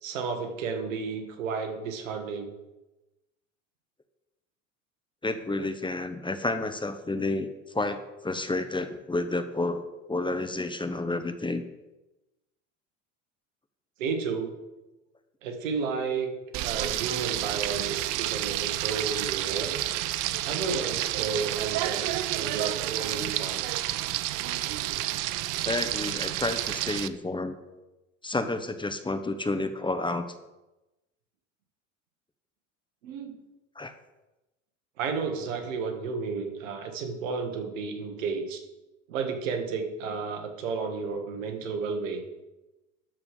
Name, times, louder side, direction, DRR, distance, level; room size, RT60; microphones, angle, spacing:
voice 1, 0.0-2.5 14.0-14.6 15.4-16.3 16.6-19.8 20.4-23.9 33.0-33.4 35.0-38.6 39.1-42.3, right 5 dB, 80° right, 5 dB, 1.7 m, -32 dB
voice 2, 5.2-11.6 25.6-27.6 28.2-30.3 33.8-33.9, left 2 dB, 10° left, 9 dB, 1.0 m, -30 dB
Frying (food), 16.5-27.1, right 15 dB, 55° right, 0.7 m, -30 dB
12.5 x 4.9 x 6.6 m, 1.0 s
hypercardioid pair, 75°, 38 cm